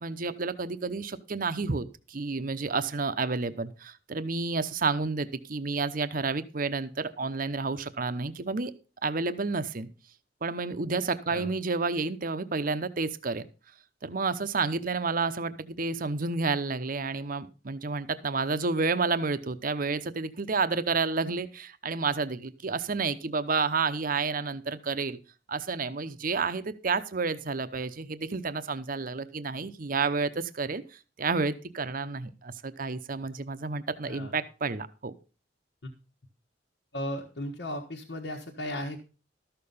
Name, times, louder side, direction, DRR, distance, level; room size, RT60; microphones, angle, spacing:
voice 1, 0.0-8.7 9.0-9.9 10.4-13.5 14.0-25.2 25.5-35.1, right 4 dB, 50° right, 11 dB, 0.8 m, -30 dB
voice 2, 34.0-34.4 35.8-35.9 36.9-39.1, left 1 dB, 65° left, 0 dB, 1.5 m, -36 dB
13.0 x 6.8 x 5.5 m, 0.34 s
head